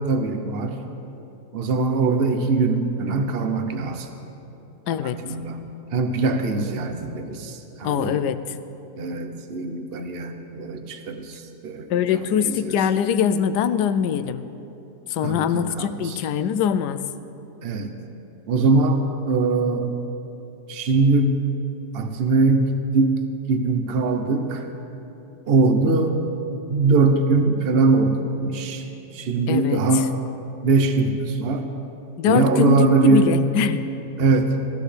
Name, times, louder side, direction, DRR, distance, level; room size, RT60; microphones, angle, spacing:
voice 1, 0.1-0.8 1.5-4.1 4.9-8.2 9.0-12.8 15.2-16.2 17.6-17.9 18.5-19.9 20.7-21.4 21.9-23.2 23.5-24.7 25.5-26.2 26.7-28.9 29.1-30.1 30.6-31.7 32.2-33.3 34.2-34.5, right 3 dB, 45° right, 6 dB, 0.9 m, -22 dB
voice 2, 4.9-5.2 7.8-8.6 11.9-14.5 15.1-17.0 29.5-30.1 32.2-33.9, left 8 dB, 85° left, 12 dB, 1.2 m, -23 dB
18.5 x 14.5 x 3.3 m, 2.9 s
omnidirectional pair, 1.7 m